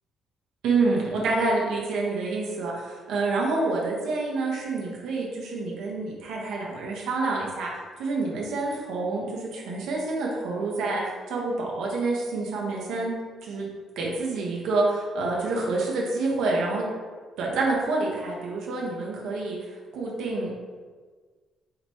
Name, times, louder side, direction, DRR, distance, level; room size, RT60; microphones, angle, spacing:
voice 1, 0.6-7.7 8.0-13.1 13.4-13.7 14.0-16.9 17.4-20.5, right 3 dB, 90° right, -3 dB, 0.8 m, -27 dB
5.0 x 2.9 x 3.0 m, 1.5 s
cardioid pair, 135°, 0 cm